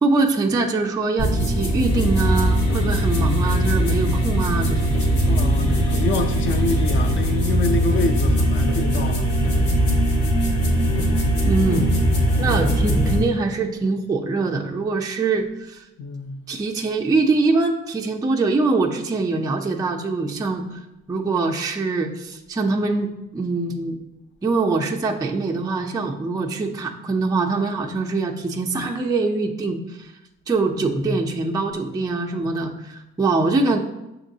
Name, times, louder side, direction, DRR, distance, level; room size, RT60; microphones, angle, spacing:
voice 1, 0.0-4.9 11.4-11.9 12.4-15.8 16.5-20.8 21.1-24.0 24.4-30.1 30.5-33.8, right 3 dB, 15° right, 0.4 m, -23 dB
sound 1, 1.2-13.2, right 1 dB, 70° left, 1.3 m, -20 dB
voice 2, 5.3-9.2 16.0-16.4 30.7-31.2, left 3 dB, 40° left, 0.5 m, -26 dB
6.4 x 3.0 x 2.7 m
cardioid pair, 90°, 30 cm